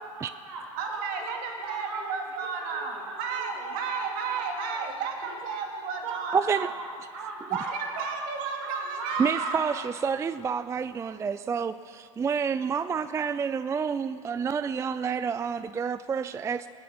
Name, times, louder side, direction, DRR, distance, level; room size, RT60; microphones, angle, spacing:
voice 1, 0.0-4.9 5.2-5.4 6.0-8.1 8.6-9.6 12.1-12.2, right 3 dB, 70° right, 1 dB, 4.0 m, -39 dB
voice 2, 0.8-6.7 7.5-7.7 8.0-9.6, right 5 dB, 55° right, 2 dB, 2.6 m, -33 dB
voice 3, 6.3-6.7 9.2-16.7, right 6 dB, 15° right, 13 dB, 0.4 m, -29 dB
20.5 x 8.6 x 7.2 m, 2.2 s
hypercardioid pair, 85°, 17 cm